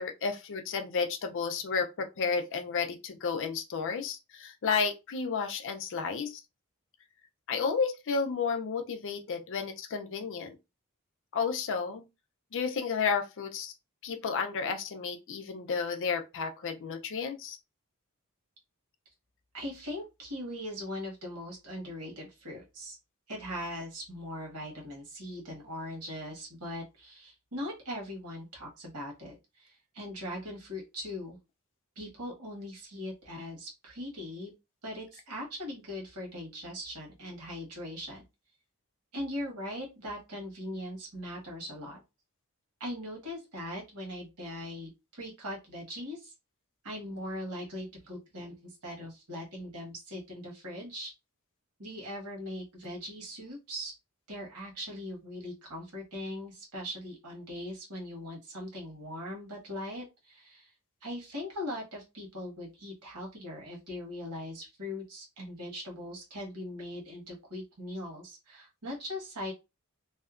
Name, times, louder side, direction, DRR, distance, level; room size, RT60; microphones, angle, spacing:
voice 1, 0.0-6.4 7.5-10.6 11.3-12.0 12.5-13.7 14.0-17.6, left 5 dB, 60° left, 0.5 m, -32 dB
voice 2, 19.5-23.0 23.3-31.4 32.0-34.5 34.8-38.2 39.1-42.0 42.8-46.3 46.8-51.1 51.8-53.9 54.3-60.7 61.0-69.5, left 1 dB, 90° right, 1.3 m, -40 dB
2.7 x 2.2 x 2.4 m
head